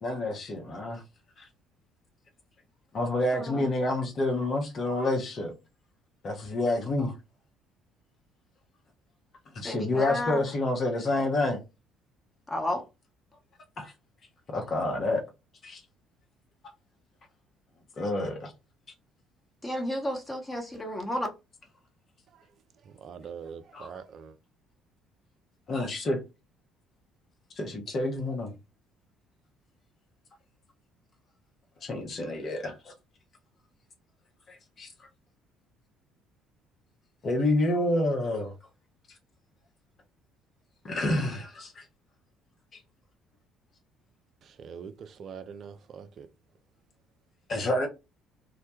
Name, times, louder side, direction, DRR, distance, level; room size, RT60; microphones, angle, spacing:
voice 1, 0.0-1.0 2.9-5.5 6.2-7.1 9.5-11.6 13.8-13.9 14.5-15.2 15.6-15.8 18.0-18.5 23.7-23.9 25.7-26.2 27.6-28.5 31.8-32.7 34.5-34.9 37.2-38.5 40.8-41.8 42.7-42.8 47.5-47.9, left 2 dB, 45° left, 0.7 m, -28 dB
voice 2, 3.3-3.7 9.6-10.4 12.5-12.8 19.6-21.3, left 1 dB, 15° left, 0.9 m, -32 dB
voice 3, 22.8-24.4 44.4-46.3, right 7 dB, 50° right, 0.3 m, -43 dB
2.1 x 2.1 x 2.9 m
figure-of-eight pair, 50°, 0 cm